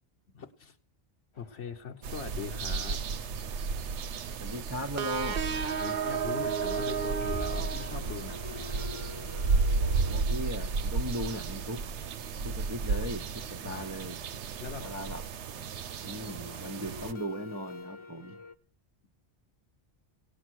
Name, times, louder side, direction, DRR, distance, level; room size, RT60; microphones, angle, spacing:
voice 1, 0.3-0.8 1.4-3.0 5.8-8.9 12.3-12.5 13.6-13.8 14.6-14.9, left 6 dB, 85° left, 2 dB, 1.3 m, -41 dB
sound 1, 1.4-2.6 2.8-2.9 3.2-3.3 7.2-12.9 15.6-18.6, left 3 dB, 30° left, 0.8 m, -47 dB
sound 2, 2.0-17.1, right 4 dB, 85° right, 1.1 m, -33 dB
voice 2, 4.4-5.7 9.8-11.8 12.4-14.2 14.8-15.2 16.0-18.4, equal, 15° right, 3 dB, 0.8 m, -38 dB
sound 3, 5.0-8.5, right 7 dB, 60° right, 1.0 m, -33 dB
17.5 x 8.2 x 6.3 m, 0.39 s
omnidirectional pair, 1.1 m